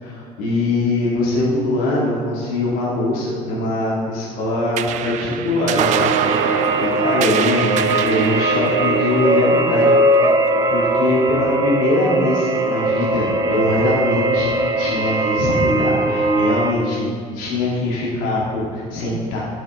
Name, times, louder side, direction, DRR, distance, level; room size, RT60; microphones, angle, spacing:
voice 1, 0.0-9.9 10.2-10.3 10.7-19.4, left 2 dB, 75° left, -6 dB, 2.4 m, -22 dB
sound 1, 4.8-11.5, right 11 dB, 60° right, 0.4 m, -26 dB
sound 2, 5.7-16.7, right 1 dB, 25° right, 0.9 m, -19 dB
11.5 x 6.3 x 3.7 m, 2.3 s
cardioid pair, 110°, 14 cm